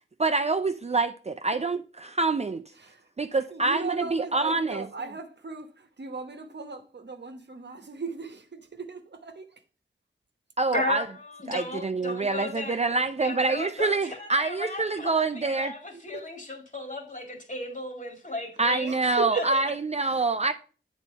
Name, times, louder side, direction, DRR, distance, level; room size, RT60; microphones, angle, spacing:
voice 1, 0.2-2.6 3.2-4.8 10.6-11.0 11.5-15.7 18.6-20.5, right 3 dB, 35° right, 0.4 m, -26 dB
voice 2, 2.7-9.6 16.1-16.2 18.9-19.6 20.0-20.3, right 4 dB, 60° right, 1.0 m, -37 dB
voice 3, 10.7-12.8 13.2-19.0 19.3-19.4, left 2 dB, 40° left, 2.2 m, -35 dB
8.2 x 4.1 x 5.3 m
wide cardioid pair, 55°, 20 cm